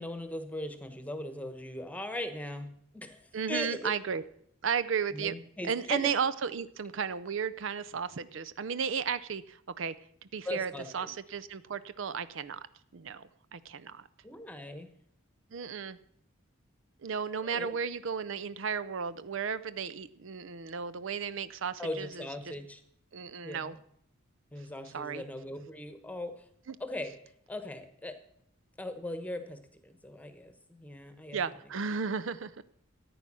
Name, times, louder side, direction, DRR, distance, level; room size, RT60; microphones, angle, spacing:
voice 1, 0.0-3.9 5.1-6.1 10.4-11.1 14.2-14.9 17.4-17.8 21.8-22.8 23.4-23.8 24.5-26.5 26.8-27.1 27.5-28.2 28.8-31.4, left 1 dB, 5° left, 9 dB, 1.1 m, -39 dB
voice 2, 3.3-4.2 4.6-5.3 5.6-9.9 10.2-12.6 12.9-14.1 15.5-16.0 17.0-22.5 23.1-23.8 24.9-25.2 26.7-26.8 31.3-32.6, right 6 dB, 65° right, 15 dB, 0.5 m, -34 dB
14.0 x 9.4 x 6.1 m, 0.70 s
head